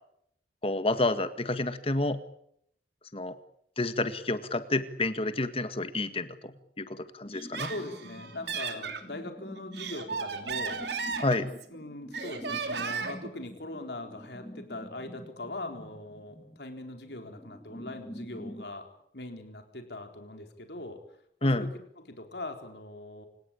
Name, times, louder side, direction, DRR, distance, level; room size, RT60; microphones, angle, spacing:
voice 1, 0.6-2.2 3.1-3.3 3.8-6.5 6.8-7.7 11.2-11.5 21.4-21.7, left 2 dB, 35° left, 10 dB, 1.9 m, -29 dB
sound 1, 7.3-18.7, equal, 15° left, 1.9 m, -47 dB
Laughter, 7.3-9.0 9.6-11.8 12.1-13.3, right 5 dB, 70° right, 3.2 m, -35 dB
voice 2, 7.7-11.0 11.7-18.9 19.1-21.0 21.4-23.3, left 2 dB, 65° left, 5 dB, 4.1 m, -41 dB
28.0 x 18.0 x 8.7 m, 0.72 s
head